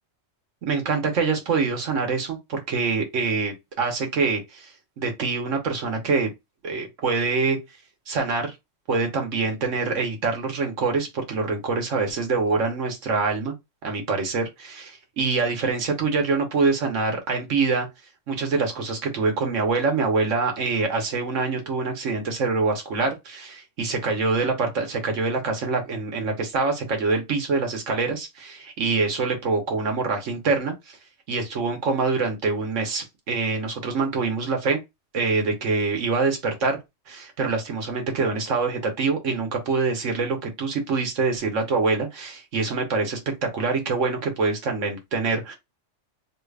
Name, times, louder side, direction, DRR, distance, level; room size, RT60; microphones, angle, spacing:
voice 1, 0.6-4.7 5.0-6.3 6.6-7.6 8.1-8.5 8.9-13.5 13.8-17.9 18.3-31.0 31.3-34.8 35.1-36.8 37.1-45.6, right 4 dB, 90° right, 1.4 m, -25 dB
3.1 x 2.4 x 3.2 m
omnidirectional pair, 1.2 m